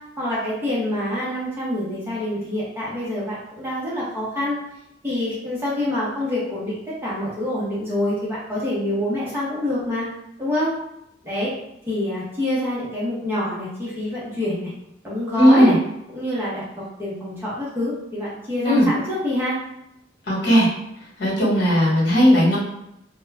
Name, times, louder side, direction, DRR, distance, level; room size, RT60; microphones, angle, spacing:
voice 1, 0.2-4.6 5.0-10.1 10.4-10.7 11.2-11.5 11.9-14.7 15.0-15.8 16.1-19.6, left 1 dB, 15° right, -8 dB, 0.8 m, -26 dB
voice 2, 15.4-15.7 18.6-18.9 20.3-20.7 21.2-22.6, equal, 60° left, -6 dB, 1.2 m, -16 dB
2.3 x 2.1 x 3.2 m, 0.82 s
head